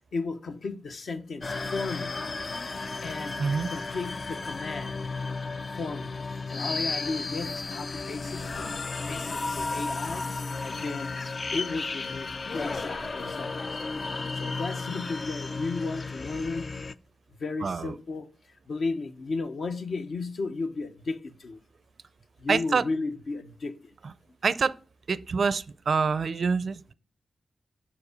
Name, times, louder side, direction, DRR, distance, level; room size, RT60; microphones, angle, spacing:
voice 1, 0.1-2.2 3.0-3.4 3.7-5.0 5.8-6.2 6.5-8.7 9.0-10.3 10.6-11.2 11.5-13.6 14.3-16.7 17.4-18.3 18.7-21.6 22.4-23.8, left 3 dB, 65° left, 1.0 m, -34 dB
sound 1, 1.4-16.9, left 3 dB, 40° left, 0.4 m, -34 dB
voice 2, 3.4-3.7 17.6-17.9 22.5-22.8 24.4-24.8 25.1-26.9, right 5 dB, 55° right, 0.4 m, -26 dB
7.1 x 4.9 x 6.6 m
wide cardioid pair, 105°, 0 cm